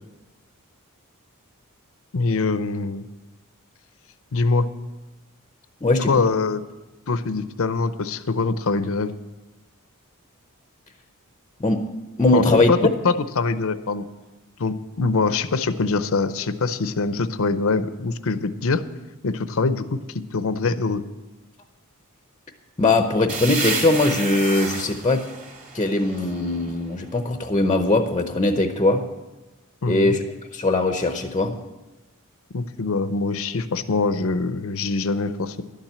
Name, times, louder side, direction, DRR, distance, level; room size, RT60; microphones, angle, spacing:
voice 1, 2.1-3.0 4.3-4.7 6.1-6.6 7.1-9.1 12.3-14.0 14.6-18.8 19.2-20.0 20.3-21.0 29.8-30.2 32.5-35.6, left 3 dB, 70° left, 13 dB, 0.7 m, -23 dB
voice 2, 5.8-6.1 11.6-11.9 12.2-12.7 22.8-25.3 25.7-29.0 29.9-30.2 30.5-31.6, left 2 dB, 25° left, 6 dB, 0.7 m, -20 dB
sound 1, 23.3-26.9, right 4 dB, 40° right, 2.5 m, -31 dB
12.0 x 7.4 x 8.0 m, 1.1 s
head